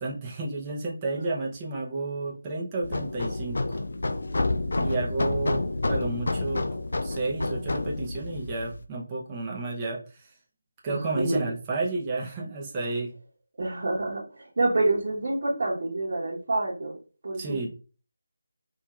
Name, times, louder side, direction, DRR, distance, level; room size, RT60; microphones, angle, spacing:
voice 1, 0.0-3.6 4.8-6.6 7.0-10.2 10.8-13.1 17.4-17.7, right 3 dB, 20° right, -3 dB, 0.8 m, -31 dB
sound 1, 2.8-8.8, left 2 dB, 65° left, 0.4 m, -29 dB
voice 2, 10.9-11.5 13.6-17.0 17.2-17.7, right 2 dB, 50° right, -7 dB, 1.2 m, -27 dB
4.4 x 2.7 x 2.4 m, 0.37 s
figure-of-eight pair, 165°, 0 cm